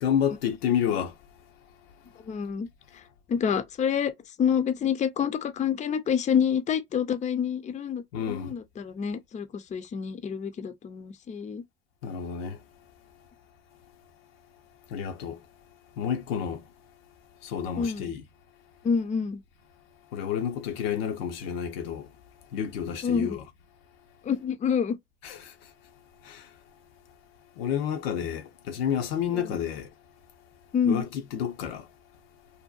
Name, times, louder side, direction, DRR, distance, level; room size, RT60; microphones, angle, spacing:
voice 1, 0.0-1.2 8.1-8.5 12.0-12.6 14.9-15.4 16.0-16.7 17.4-18.2 20.1-22.1 22.5-23.4 25.2-25.7 26.2-26.5 27.6-29.9 30.8-31.9, left 8 dB, 80° left, 0.6 m, -30 dB
voice 2, 2.3-2.7 3.3-4.1 4.4-11.6 17.8-18.1 18.8-19.4 23.0-23.4 24.3-25.0 30.7-31.0, left 7 dB, 25° left, 0.4 m, -27 dB
2.6 x 2.1 x 2.3 m
hypercardioid pair, 70°, 30 cm